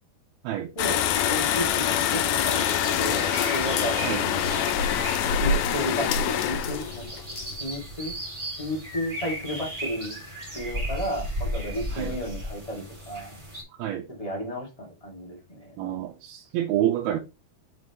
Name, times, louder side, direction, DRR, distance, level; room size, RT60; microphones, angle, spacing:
voice 1, 0.7-4.5 5.4-8.2 8.6-10.2 10.5-13.4 14.1-15.8, equal, 10° left, 1.8 m, -33 dB
sound 1, 0.8-8.1, left 8 dB, 80° left, 2.5 m, -25 dB
sound 2, 1.0-13.6, equal, 10° right, 3.0 m, -36 dB
voice 2, 15.8-17.2, right 12 dB, 85° right, 2.7 m, -28 dB
6.0 x 5.9 x 3.1 m
omnidirectional pair, 4.3 m